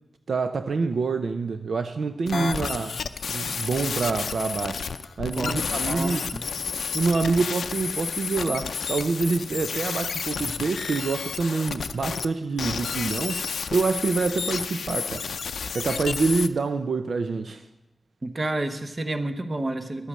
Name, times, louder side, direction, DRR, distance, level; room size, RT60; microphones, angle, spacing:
voice 1, 0.3-3.0 3.3-4.8 5.2-6.4 6.9-13.4 13.7-15.3 15.7-17.6, right 4 dB, 70° right, 0.5 m, -26 dB
sound 1, 2.3-12.3 12.6-16.5, left 6 dB, 80° left, 0.5 m, -31 dB
voice 2, 5.9-6.4 18.2-20.1, right 2 dB, 30° right, 0.9 m, -30 dB
11.0 x 8.3 x 7.3 m
wide cardioid pair, 110°, 0 cm